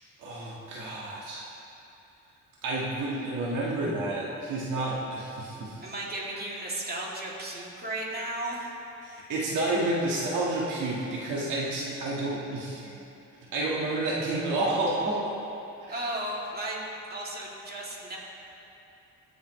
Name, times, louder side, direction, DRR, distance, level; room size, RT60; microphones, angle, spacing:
voice 1, 0.2-1.5 2.6-5.9 9.0-13.0 13.5-15.3 15.8-16.1, right 2 dB, 85° right, -5 dB, 1.8 m, -30 dB
voice 2, 5.8-8.7 15.9-18.2, right 1 dB, 30° right, -4 dB, 2.6 m, -35 dB
19.5 x 7.0 x 3.2 m, 3.0 s
cardioid pair, 90°, 30 cm